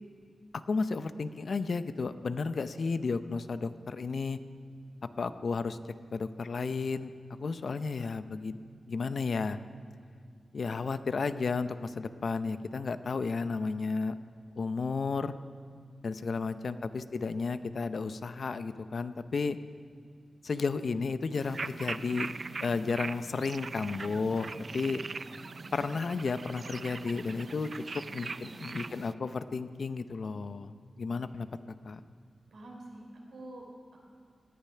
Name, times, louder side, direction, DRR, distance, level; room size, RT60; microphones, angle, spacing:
voice 1, 0.7-4.4 5.2-5.8 6.1-8.6 8.9-9.6 10.5-14.1 14.6-15.3 16.0-19.6 20.4-22.3 22.6-25.0 25.7-31.5 31.8-32.0, left 4 dB, 70° left, 12 dB, 0.6 m, -33 dB
sound 1, 21.3-29.1, right 4 dB, 55° right, 0.4 m, -41 dB
voice 2, 28.3-28.8 32.5-34.1, right 1 dB, 90° right, -2 dB, 3.7 m, -48 dB
18.5 x 10.5 x 5.7 m, 2.1 s
cardioid pair, 50°, 0 cm